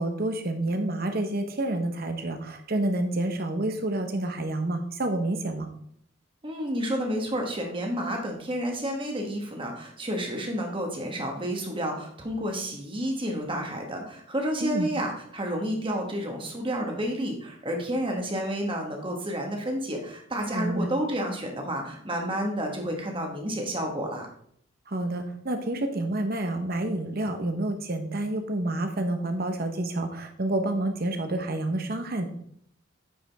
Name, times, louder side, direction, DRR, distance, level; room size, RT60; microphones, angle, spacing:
voice 1, 0.0-5.7 14.6-14.9 20.5-20.9 24.9-32.3, right 1 dB, 50° right, 6 dB, 1.0 m, -29 dB
voice 2, 6.4-24.3, equal, 25° right, 2 dB, 1.5 m, -30 dB
9.5 x 5.2 x 3.5 m, 0.66 s
head